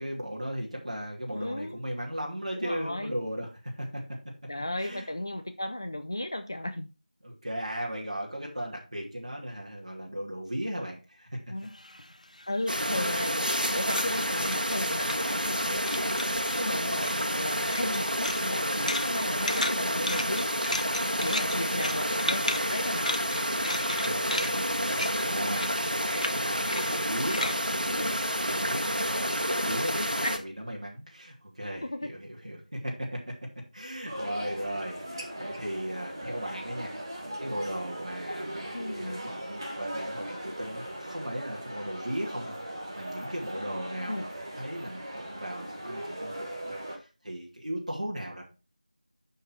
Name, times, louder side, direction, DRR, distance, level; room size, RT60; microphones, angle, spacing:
voice 1, 0.0-3.5 3.8-4.0 4.8-5.1 7.2-11.4 21.4-22.1 23.9-33.2 33.7-36.9 37.4-48.4, equal, 50° right, -3 dB, 2.9 m, -37 dB
voice 2, 1.3-1.8 2.6-3.2 4.5-6.9 11.5-11.7 12.5-13.5 13.7-15.8 16.1-16.3 16.6-20.6 21.2-23.1 27.9-28.2 29.9-30.4 31.8-32.1 38.7-39.2 44.1-44.3, left 1 dB, 30° left, 7 dB, 0.5 m, -35 dB
sound 1, 11.7-15.6 15.9-16.6 17.0-28.8, left 1 dB, 60° left, 1.1 m, -36 dB
sound 2, 12.7-30.4, equal, 90° right, 1.9 m, -29 dB
sound 3, 34.1-47.0, right 1 dB, 30° right, 1.6 m, -39 dB
11.0 x 4.6 x 4.5 m, 0.31 s
figure-of-eight pair, 175°, 5 cm